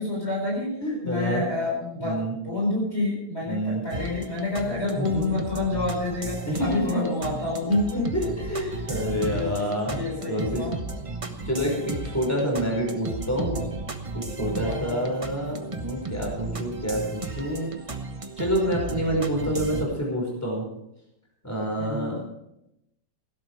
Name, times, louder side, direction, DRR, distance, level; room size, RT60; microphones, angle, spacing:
voice 1, 0.0-0.7 1.0-8.1 8.6-8.8 9.3-9.5 9.8-10.7 14.6-15.1 21.8-22.2, left 2 dB, 35° left, -4 dB, 4.7 m, -28 dB
voice 2, 0.8-1.4 2.0-2.3 3.4-3.8 5.0-5.2 6.4-7.0 7.9-10.0 10.3-10.6 11.0-11.1 11.5-13.6 14.1-17.7 18.4-20.6 21.4-22.2, equal, 10° left, -2 dB, 5.3 m, -28 dB
sound 1, 3.9-19.8, right 3 dB, 25° right, 0.9 m, -34 dB
17.0 x 12.0 x 4.9 m, 0.83 s
omnidirectional pair, 1.9 m